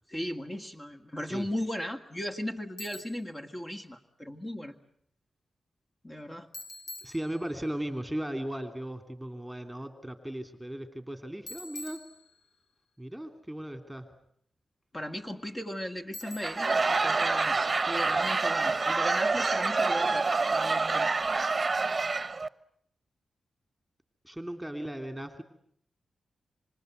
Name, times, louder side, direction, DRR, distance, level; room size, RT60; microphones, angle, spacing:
voice 1, 0.1-4.7 6.0-6.5 14.9-17.6 17.8-21.1, equal, 25° left, 4 dB, 2.0 m, -37 dB
Bicycle, 2.8-3.3 6.5-7.8 11.5-12.7 16.1-16.8, left 2 dB, 70° left, 3.5 m, -45 dB
voice 2, 7.0-12.0 13.0-14.1 24.2-25.4, right 1 dB, 5° right, 7 dB, 3.0 m, -37 dB
Laughter / Crowd, 16.3-22.5, right 3 dB, 35° right, 1.0 m, -27 dB
26.0 x 26.0 x 8.1 m, 0.67 s
cardioid pair, 65°, 0 cm